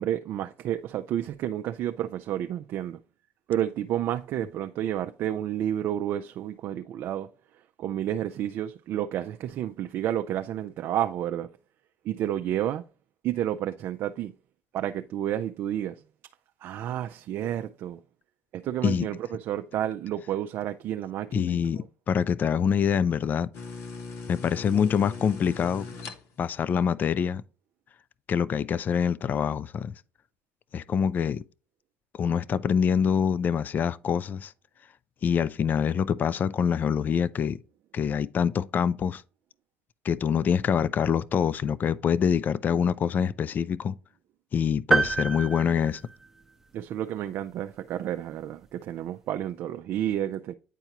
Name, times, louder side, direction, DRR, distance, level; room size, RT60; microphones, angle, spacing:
voice 1, 0.0-3.0 3.5-7.3 7.8-11.5 12.0-12.8 13.2-14.3 14.7-16.0 16.6-18.0 18.5-21.8 46.7-50.5, right 11 dB, 60° right, 0.4 m, -30 dB
voice 2, 21.3-23.5 24.3-25.9 26.4-27.4 28.3-30.0 30.7-31.4 32.1-34.5 35.2-37.6 37.9-39.2 40.0-43.9 44.5-46.0, left 7 dB, 40° left, 0.4 m, -25 dB
sound 1, 23.5-26.6, left 4 dB, 60° left, 0.9 m, -39 dB
sound 2, 44.9-46.7, right 3 dB, 5° right, 0.8 m, -27 dB
9.0 x 4.5 x 2.8 m
supercardioid pair, 90°, 5 cm